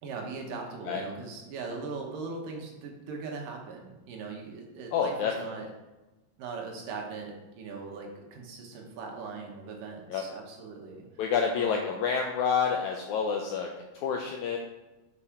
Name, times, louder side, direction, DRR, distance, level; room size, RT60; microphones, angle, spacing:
voice 1, 0.0-5.7 6.4-11.1 11.6-11.9, right 4 dB, 75° right, 1 dB, 2.7 m, -40 dB
voice 2, 4.9-5.3 10.1-10.2 11.2-13.7 13.9-14.6, left 6 dB, 85° left, 2 dB, 1.7 m, -28 dB
6.1 x 5.8 x 4.9 m, 1.1 s
omnidirectional pair, 4.0 m